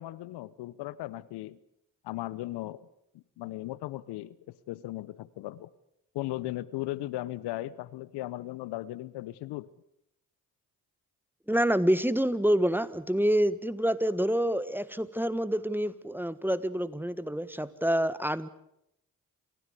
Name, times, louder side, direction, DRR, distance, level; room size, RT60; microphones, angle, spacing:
voice 1, 0.0-1.6 2.0-2.9 3.1-5.7 6.1-9.7, left 16 dB, 75° left, 20 dB, 0.9 m, -37 dB
voice 2, 11.5-18.5, equal, 5° right, 15 dB, 1.5 m, -27 dB
28.0 x 16.5 x 8.3 m, 0.81 s
hypercardioid pair, 45°, 40 cm